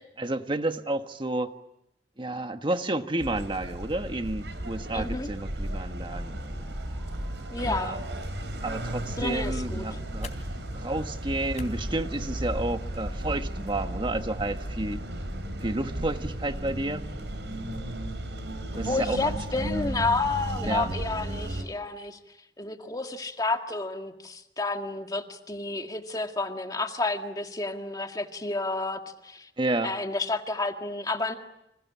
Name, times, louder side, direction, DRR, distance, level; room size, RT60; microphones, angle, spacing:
voice 1, 0.2-1.5 2.2-6.4 7.6-8.0 8.6-10.3 10.7-15.0 15.6-17.1 18.7-19.7 20.7-20.9 29.6-29.9, right 2 dB, 30° right, 7 dB, 1.4 m, -31 dB
sound 1, 3.2-21.6, right 1 dB, 80° right, 4.5 m, -34 dB
voice 2, 4.9-5.3 7.5-8.0 9.2-10.0 18.7-22.2 22.6-29.5 29.8-31.3, left 3 dB, 20° left, 5 dB, 1.9 m, -30 dB
sound 2, 6.0-15.3, left 1 dB, ahead, 2.8 m, -53 dB
sound 3, 9.1-13.1, left 2 dB, 40° left, 3.6 m, -49 dB
29.5 x 26.5 x 7.4 m, 0.86 s
head